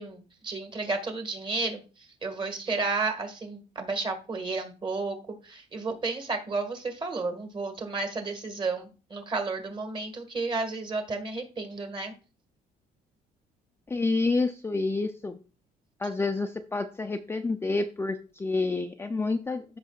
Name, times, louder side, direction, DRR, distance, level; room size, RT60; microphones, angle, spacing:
voice 1, 0.0-5.2 5.4-12.1, right 3 dB, 30° right, 5 dB, 1.8 m, -32 dB
voice 2, 13.9-15.4 16.0-19.8, left 3 dB, 15° left, 6 dB, 0.5 m, -28 dB
13.5 x 5.5 x 2.4 m, 0.35 s
cardioid pair, 110°, 17 cm